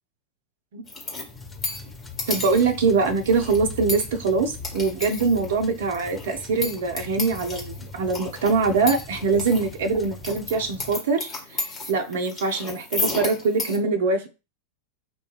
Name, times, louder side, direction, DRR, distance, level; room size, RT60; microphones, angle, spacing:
sound 1, 0.9-13.8, left 2 dB, 25° left, 1.1 m, -34 dB
sound 2, 1.3-11.0, left 4 dB, 10° left, 0.5 m, -41 dB
voice 1, 2.3-14.3, right 4 dB, 55° right, 6 dB, 0.4 m, -23 dB
2.4 x 2.2 x 3.0 m, 0.30 s
figure-of-eight pair, 90°, 0 cm